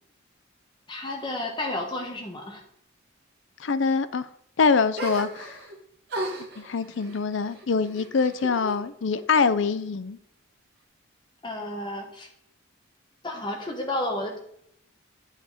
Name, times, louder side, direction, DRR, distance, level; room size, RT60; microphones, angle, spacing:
voice 1, 0.9-2.6 11.4-12.3 13.2-14.4, left 1 dB, 25° left, 1.5 m, -31 dB
voice 2, 3.6-4.3 4.6-5.6 6.6-10.2, left 5 dB, 65° left, 0.5 m, -24 dB
sound 1, 4.9-5.8 6.1-8.8 9.1-10.0, right 2 dB, 50° right, 1.7 m, -37 dB
9.6 x 5.7 x 4.3 m
head